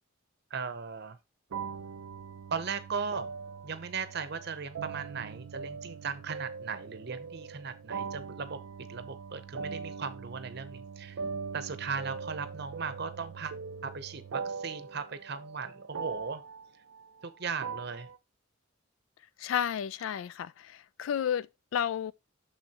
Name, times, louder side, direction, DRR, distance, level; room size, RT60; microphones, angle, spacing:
voice 1, 0.5-1.2 2.5-3.3 3.6-8.6 8.9-11.2 11.5-13.5 13.8-16.4 17.2-18.1, right 5 dB, 50° right, 0.7 m, -37 dB
sound 1, 1.5-18.2, right 5 dB, 75° right, 0.4 m, -41 dB
voice 2, 19.4-22.1, left 9 dB, 70° left, 0.3 m, -32 dB
6.3 x 6.3 x 2.9 m
head